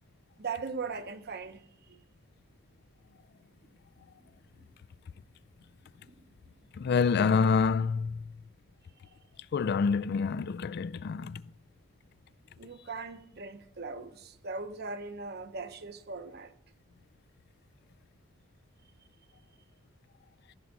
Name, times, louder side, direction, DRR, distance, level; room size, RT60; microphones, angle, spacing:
voice 1, 0.4-1.6 1.9-2.0 4.6-4.7 6.0-6.1 12.6-16.5, right 4 dB, 50° right, 0.9 m, -39 dB
voice 2, 6.8-8.2 9.5-11.4, left 5 dB, 50° left, 0.3 m, -27 dB
15.0 x 6.4 x 5.9 m
head